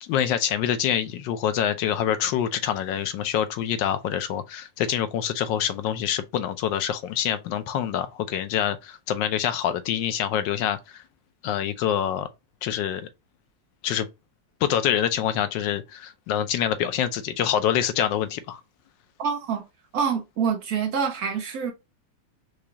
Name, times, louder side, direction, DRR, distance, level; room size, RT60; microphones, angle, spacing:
voice 1, 0.0-11.0 11.4-12.3 12.6-13.1 13.8-14.1 14.6-18.6, left 10 dB, 80° left, 1.3 m, -26 dB
voice 2, 19.2-19.6 19.9-21.7, right 6 dB, 65° right, 1.1 m, -26 dB
4.9 x 2.3 x 2.7 m
omnidirectional pair, 2.0 m